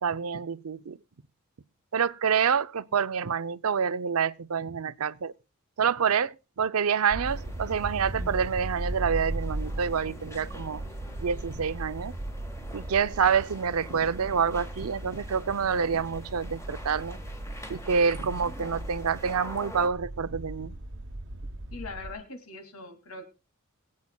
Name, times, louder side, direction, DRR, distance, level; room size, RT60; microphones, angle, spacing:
voice 1, 0.0-1.0 1.9-5.3 5.8-10.8 11.2-12.2 12.7-17.2 17.7-20.7, right 6 dB, 90° right, 0.6 m, -27 dB
sound 1, 7.1-22.2, right 1 dB, 60° right, 1.0 m, -38 dB
sound 2, 7.2-19.9, left 1 dB, 15° left, 1.6 m, -46 dB
voice 2, 21.7-23.3, left 3 dB, 85° left, 2.6 m, -41 dB
22.5 x 8.5 x 2.3 m
head